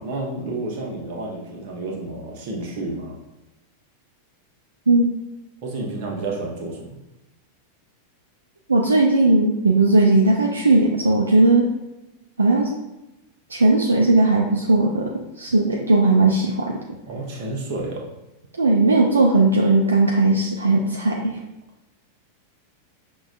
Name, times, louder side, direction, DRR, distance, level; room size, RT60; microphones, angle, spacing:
voice 1, 0.0-3.2 5.6-7.0 17.1-18.0, right 2 dB, 45° right, -1 dB, 0.9 m, -30 dB
voice 2, 8.7-11.7 12.4-12.7 13.5-16.8 18.6-21.4, right 2 dB, 75° right, 0 dB, 0.4 m, -17 dB
6.0 x 2.2 x 2.4 m, 0.96 s
figure-of-eight pair, 90°, 0 cm